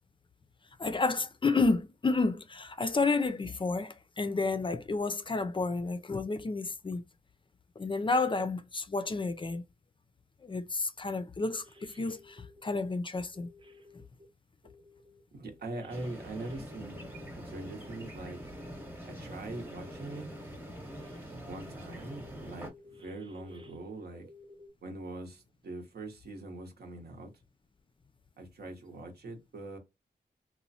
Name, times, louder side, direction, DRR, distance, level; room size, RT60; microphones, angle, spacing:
voice 1, 0.8-7.0 7.8-9.6 10.4-13.5, left 3 dB, 30° left, 0.4 m, -30 dB
sound 1, 11.4-12.8 13.3-14.3 14.6-18.9 19.5-20.5 20.9-21.2 21.5-24.7, left 2 dB, 30° right, 0.5 m, -55 dB
voice 2, 15.3-17.1 17.4-18.4 19.0-20.3 21.4-24.3 24.8-27.3 28.4-29.8, right 2 dB, 75° right, 0.8 m, -42 dB
sound 2, 15.9-22.7, equal, 10° right, 0.9 m, -44 dB
3.0 x 2.1 x 2.7 m
cardioid pair, 55°, 17 cm